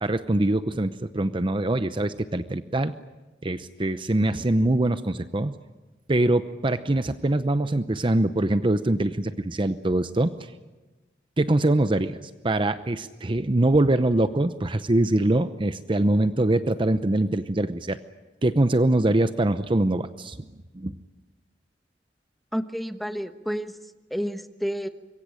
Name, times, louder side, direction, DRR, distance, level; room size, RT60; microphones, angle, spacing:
voice 1, 0.0-2.9 3.4-5.5 6.1-10.3 11.4-12.2 12.4-18.0 18.4-20.5 20.7-20.9, right 1 dB, 30° right, 11 dB, 0.8 m, -23 dB
voice 2, 22.5-23.8 24.1-24.9, equal, ahead, 8 dB, 1.2 m, -30 dB
25.5 x 23.0 x 8.8 m, 1.2 s
head